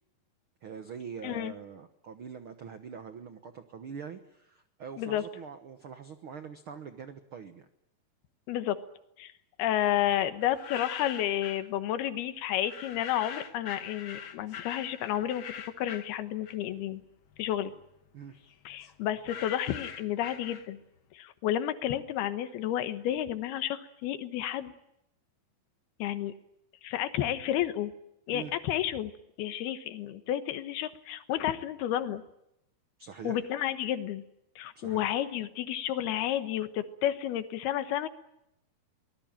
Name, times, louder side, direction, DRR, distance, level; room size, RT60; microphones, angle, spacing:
voice 1, 0.6-7.6 18.1-18.4 28.3-28.5 33.0-33.4 34.7-35.0, right 6 dB, 85° right, 9 dB, 1.1 m, -44 dB
voice 2, 1.2-1.5 5.0-5.2 8.5-8.8 9.2-9.3 9.6-15.4 15.8-17.0 17.4-17.7 18.7-20.8 21.1-24.7 26.0-26.3 26.8-27.9 28.3-29.1 29.4-32.2 33.2-34.2 34.6-38.1, left 11 dB, 90° left, 11 dB, 3.2 m, -31 dB
sound 1, 10.4-11.7 12.6-16.9 17.2-21.0, left 8 dB, 65° left, 1.2 m, -44 dB
24.0 x 19.0 x 9.0 m, 0.81 s
omnidirectional pair, 4.4 m